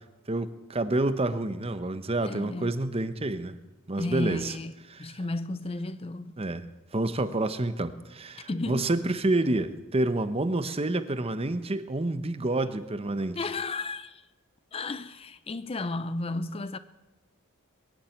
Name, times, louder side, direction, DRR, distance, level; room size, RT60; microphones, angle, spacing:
voice 1, 0.3-3.6 3.9-4.5 4.9-5.2 6.4-13.4, right 2 dB, 25° right, 0.8 m, -28 dB
voice 2, 2.2-2.7 4.0-4.7 5.0-6.4 8.5-8.9 13.3-14.3 14.7-16.8, left 2 dB, 25° left, 0.5 m, -33 dB
22.0 x 7.5 x 8.9 m
head